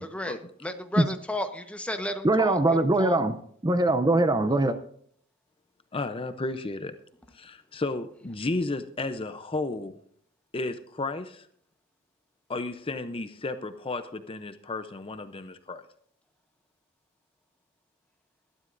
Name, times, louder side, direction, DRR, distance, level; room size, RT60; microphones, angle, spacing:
voice 1, 0.0-3.2, left 1 dB, 5° left, 6 dB, 1.1 m, -34 dB
voice 2, 2.2-3.4 3.6-4.8, right 2 dB, 20° right, 10 dB, 0.6 m, -22 dB
voice 3, 5.9-6.9 7.3-10.0 10.5-11.5 12.5-15.8, left 2 dB, 25° left, 10 dB, 0.6 m, -33 dB
19.5 x 12.5 x 2.6 m, 0.62 s
head